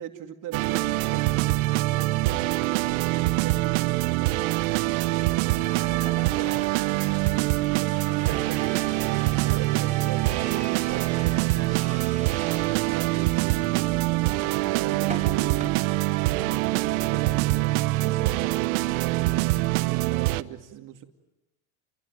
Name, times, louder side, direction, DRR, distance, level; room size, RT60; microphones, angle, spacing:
voice 1, 0.0-1.6 2.0-4.3 5.1-5.7 5.9-6.7 7.7-8.9 9.3-12.5 12.9-15.7 16.6-21.0, right 11 dB, 45° right, 5 dB, 2.5 m, -40 dB
sound 1, 0.5-20.4, right 19 dB, 80° right, 1.1 m, -24 dB
sound 2, 5.4-15.7, right 4 dB, 15° right, 4.4 m, -42 dB
29.0 x 21.5 x 9.4 m, 1.0 s
supercardioid pair, 115°, 42 cm